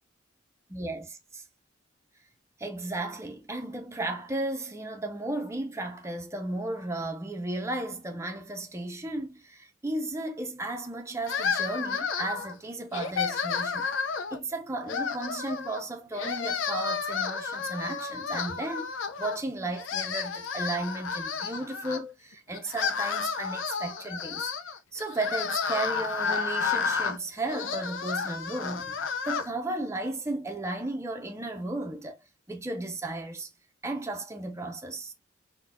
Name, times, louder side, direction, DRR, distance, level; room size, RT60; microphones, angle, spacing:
voice 1, 0.7-1.4 2.6-13.9 14.3-18.9 19.2-24.5 24.9-32.2 32.5-33.5 33.8-35.1, right 2 dB, 15° right, 0.5 m, -34 dB
sound 1, 11.3-12.5 12.9-14.4 14.8-15.8 16.1-19.4 19.7-22.0 22.5-29.5, left 5 dB, 85° left, 0.5 m, -31 dB
3.9 x 2.2 x 2.5 m
head